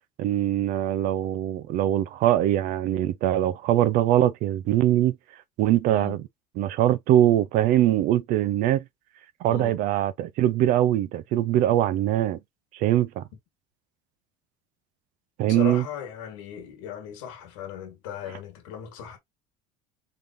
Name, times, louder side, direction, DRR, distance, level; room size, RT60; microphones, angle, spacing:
voice 1, 0.2-5.1 5.6-6.2 6.6-8.8 9.4-12.4 12.7-13.2 15.4-15.8, right 12 dB, 60° right, 0.5 m, -22 dB
voice 2, 5.9-6.2 9.5-9.8 15.4-19.2, left 9 dB, 85° left, 1.5 m, -37 dB
3.9 x 3.3 x 2.6 m
supercardioid pair, 105°, 15 cm